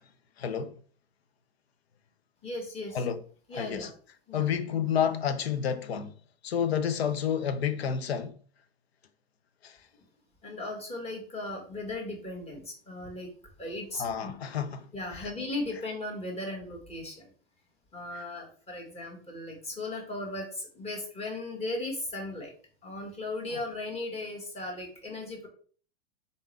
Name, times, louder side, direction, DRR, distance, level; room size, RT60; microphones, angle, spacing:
voice 1, 0.4-0.7 2.9-3.2 3.5-3.9 4.3-6.1 6.4-8.3 9.6-9.8 14.0-15.4 18.1-18.2 23.5-23.6, left 8 dB, 85° left, 0.7 m, -30 dB
voice 2, 2.4-3.0 3.5-3.9 4.3-4.4 10.4-13.3 13.6-14.3 14.9-17.3 17.9-22.5 22.8-25.5, left 2 dB, 20° left, 1.7 m, -37 dB
4.1 x 3.5 x 3.3 m
hypercardioid pair, 110°, 30 cm